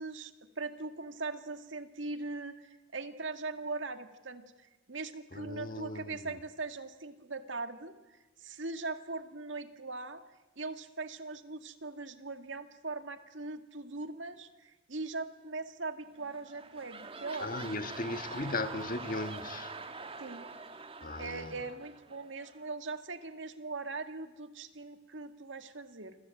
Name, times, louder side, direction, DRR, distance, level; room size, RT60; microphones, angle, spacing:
voice 1, 0.0-4.4 4.9-8.0 8.4-10.2 10.6-17.8 20.2-20.5 21.2-26.2, right 3 dB, 75° right, 2.0 m, -40 dB
voice 2, 5.3-6.3 17.4-19.7 21.0-21.5, left 2 dB, 45° left, 1.6 m, -37 dB
sound 1, 16.2-22.7 23.2-23.3, right 4 dB, 30° right, 1.5 m, -45 dB
29.0 x 22.5 x 9.1 m
head